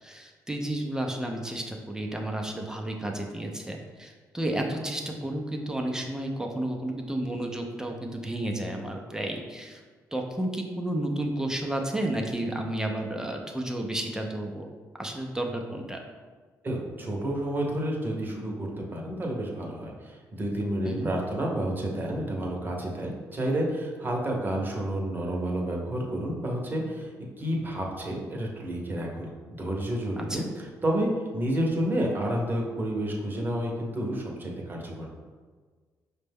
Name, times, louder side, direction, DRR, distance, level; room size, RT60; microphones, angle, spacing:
voice 1, 0.0-9.8 10.1-14.7 15.0-16.0 20.8-21.1 30.2-30.4, right 1 dB, 10° right, 1 dB, 0.5 m, -32 dB
voice 2, 16.6-29.3 29.6-30.4 30.8-35.1, right 1 dB, 30° right, -1 dB, 0.9 m, -30 dB
5.0 x 2.2 x 3.4 m, 1.5 s
cardioid pair, 80°, 7 cm